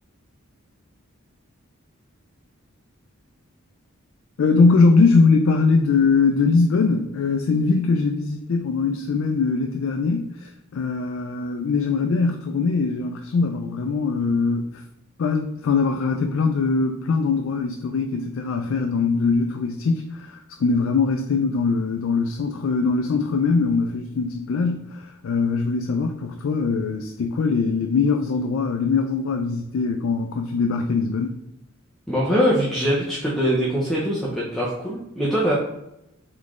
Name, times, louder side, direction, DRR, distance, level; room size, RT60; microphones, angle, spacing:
voice 1, 4.4-14.8 15.2-31.4, left 4 dB, 70° left, 4 dB, 0.4 m, -21 dB
voice 2, 32.1-35.5, equal, ahead, -7 dB, 0.6 m, -22 dB
4.0 x 3.1 x 3.6 m, 0.86 s
head